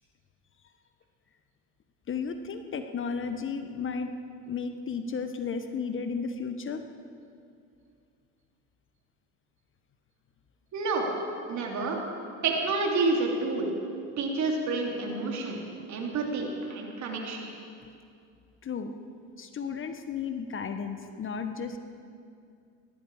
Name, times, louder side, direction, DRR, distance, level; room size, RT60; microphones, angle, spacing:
voice 1, 2.1-4.1 4.5-6.8 18.6-18.9 19.4-21.8, left 5 dB, 35° left, 8 dB, 1.2 m, -33 dB
voice 2, 10.7-11.1 11.5-12.0 12.4-13.7 14.2-15.6 15.9-17.4, right 3 dB, 50° right, 0 dB, 3.3 m, -29 dB
18.5 x 14.0 x 4.9 m, 2.4 s
hypercardioid pair, 75°, 35 cm